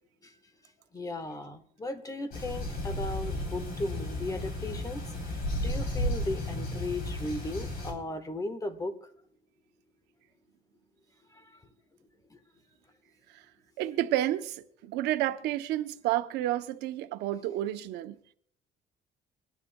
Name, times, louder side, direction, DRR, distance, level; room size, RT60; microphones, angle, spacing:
voice 1, 0.9-9.1 11.3-11.6 12.3-12.4, left 2 dB, 20° left, 1.2 m, -37 dB
sound 1, 2.3-7.9, left 1 dB, 60° left, 3.5 m, -33 dB
voice 2, 13.8-18.2, right 14 dB, 90° right, 0.7 m, -30 dB
25.0 x 9.8 x 2.2 m
cardioid pair, 110°, 17 cm